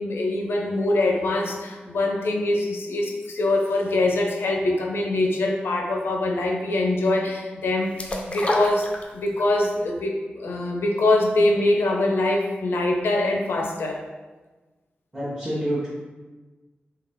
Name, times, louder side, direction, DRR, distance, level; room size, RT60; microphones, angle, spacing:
voice 1, 0.0-7.9 8.3-8.9 9.1-14.0, left 2 dB, 90° left, 0 dB, 0.6 m, -23 dB
sound 1, 8.0-9.5 9.9-10.0, left 1 dB, 30° left, 0.4 m, -27 dB
voice 2, 15.1-15.9, equal, 15° right, -8 dB, 0.8 m, -27 dB
3.8 x 2.9 x 3.5 m, 1.3 s
wide cardioid pair, 170°, 4 cm